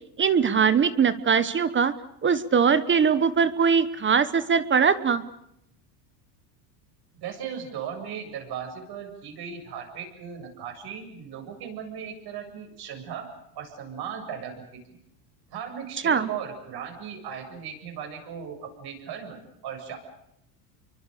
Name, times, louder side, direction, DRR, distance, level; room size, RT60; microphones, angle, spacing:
voice 1, 0.2-1.9 2.2-5.2 16.0-16.3, right 6 dB, 25° right, 14 dB, 1.2 m, -21 dB
voice 2, 7.2-13.3 13.6-14.8 15.5-19.4 19.6-20.0, right 7 dB, 50° right, 4 dB, 7.8 m, -37 dB
28.0 x 24.0 x 6.9 m, 0.78 s
supercardioid pair, 120°, 48 cm